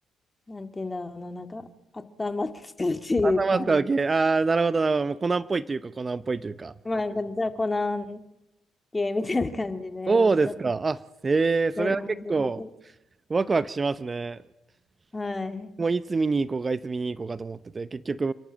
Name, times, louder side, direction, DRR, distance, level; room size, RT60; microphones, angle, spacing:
voice 1, 0.5-1.7 1.9-3.7 6.8-8.2 8.9-10.5 11.8-12.7 15.1-15.7, left 3 dB, 20° left, 8 dB, 2.0 m, -29 dB
voice 2, 3.2-6.7 10.1-11.0 11.2-12.0 12.3-12.6 13.3-14.4 15.8-18.3, right 4 dB, 35° right, 16 dB, 0.7 m, -25 dB
28.5 x 10.5 x 8.8 m, 0.96 s
supercardioid pair, 60°, 0 cm